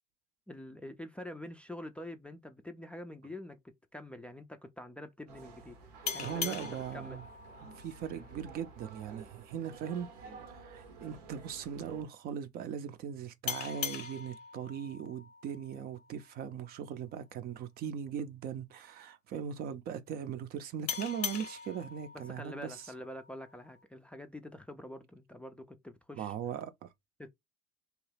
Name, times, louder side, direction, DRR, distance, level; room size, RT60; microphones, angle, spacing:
voice 1, 0.5-3.6 3.9-5.8 6.1-7.2 22.1-26.3 27.2-27.3, left 1 dB, 5° left, 0.3 m, -46 dB
sound 1, 5.3-12.0, right 5 dB, 85° right, 0.9 m, -51 dB
sound 2, 6.1-9.3 13.5-16.7 20.9-23.8, left 7 dB, 90° left, 0.6 m, -42 dB
voice 2, 6.2-7.2 7.8-10.1 10.5-22.9 26.1-26.9, right 8 dB, 50° right, 0.5 m, -39 dB
2.9 x 2.2 x 3.3 m
hypercardioid pair, 80°, 20 cm